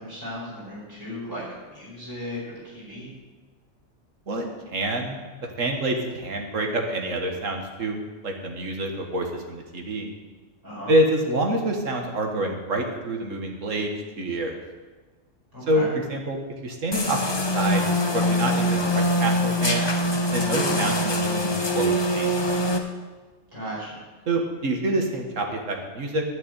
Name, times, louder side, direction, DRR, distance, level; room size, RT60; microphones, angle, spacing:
voice 1, 0.0-1.4 1.7-2.4 2.6-3.1 10.6-10.9 15.5-15.9 20.5-20.8 23.5-23.9, equal, 15° right, -9 dB, 4.9 m, -36 dB
voice 2, 4.7-5.2 5.6-10.1 10.9-14.6 15.7-19.9 20.3-22.6 24.3-26.2, right 1 dB, 85° right, 2 dB, 2.0 m, -27 dB
sound 1, 16.9-22.8, equal, 25° left, 0.8 m, -23 dB
11.5 x 6.0 x 9.2 m, 1.3 s
omnidirectional pair, 1.3 m